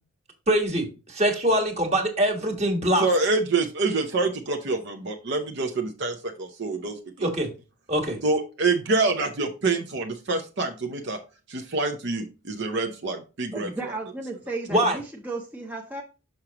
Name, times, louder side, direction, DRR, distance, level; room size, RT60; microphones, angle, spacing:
voice 1, 0.5-3.1 7.2-7.5 7.9-8.2 14.7-15.0, right 1 dB, 30° right, 3 dB, 1.4 m, -23 dB
voice 2, 3.0-6.9 7.2-7.3 8.2-11.2 11.5-13.7, right 3 dB, 55° right, 4 dB, 0.7 m, -26 dB
voice 3, 13.5-16.0, right 2 dB, 10° right, 0 dB, 0.6 m, -34 dB
6.3 x 5.9 x 2.9 m, 0.31 s
head